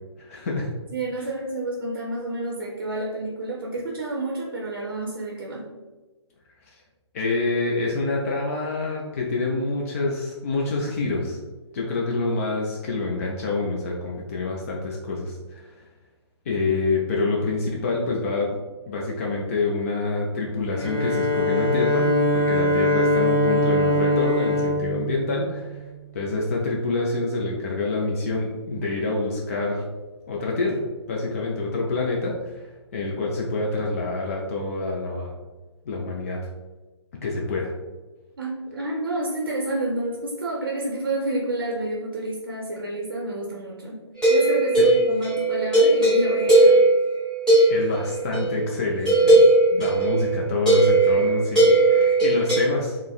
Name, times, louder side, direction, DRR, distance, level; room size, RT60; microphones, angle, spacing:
voice 1, 0.2-0.7 7.1-11.4 11.7-15.7 16.5-18.6 18.9-22.1 22.3-25.8 26.1-29.8 30.3-32.6 32.9-35.3 35.9-36.4 37.2-37.7 44.8-44.9 47.7-49.4 49.7-53.0, left 3 dB, 30° left, -2 dB, 0.4 m, -27 dB
voice 2, 0.9-5.7 38.4-44.0 44.3-46.8, right 2 dB, 50° right, -3 dB, 0.6 m, -29 dB
Bowed string instrument, 20.7-25.9, left 1 dB, 60° left, 1.5 m, -22 dB
sound 1, 44.2-48.6 49.1-52.6, right 2 dB, 5° left, 1.1 m, -18 dB
4.6 x 2.0 x 2.3 m, 1.2 s
figure-of-eight pair, 135°, 15 cm